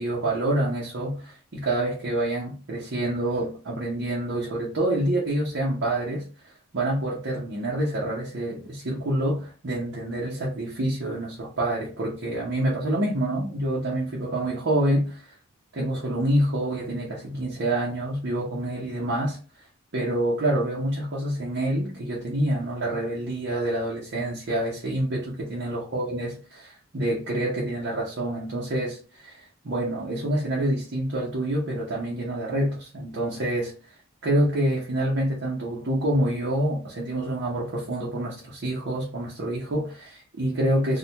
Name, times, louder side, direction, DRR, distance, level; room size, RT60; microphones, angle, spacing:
voice 1, 0.0-6.3 6.7-15.2 15.7-19.4 19.9-33.7 34.2-41.0, right 1 dB, 55° right, 0.7 m, -27 dB
2.3 x 2.1 x 2.8 m
head